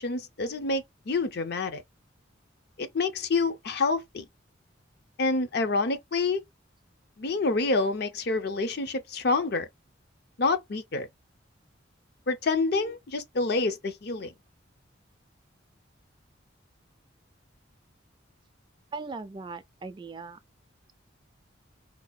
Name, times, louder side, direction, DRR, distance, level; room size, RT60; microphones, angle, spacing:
voice 1, 0.0-1.8 2.8-4.2 5.2-6.4 7.2-9.7 10.4-11.1 12.3-14.3, left 3 dB, 55° left, 0.5 m, -27 dB
voice 2, 18.9-20.4, right 4 dB, 25° right, 0.3 m, -39 dB
2.8 x 2.2 x 4.1 m
head